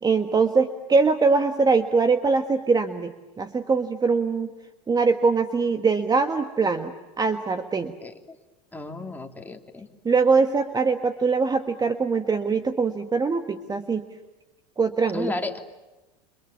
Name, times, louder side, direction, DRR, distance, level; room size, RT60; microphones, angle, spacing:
voice 1, 0.0-3.1 3.4-4.5 4.9-7.9 10.0-14.0 14.8-15.3, right 4 dB, 20° right, 9 dB, 1.5 m, -22 dB
voice 2, 8.7-9.9 15.1-15.6, left 2 dB, 10° left, 4 dB, 3.3 m, -33 dB
29.5 x 27.0 x 7.3 m, 1.1 s
hypercardioid pair, 90°, 20 cm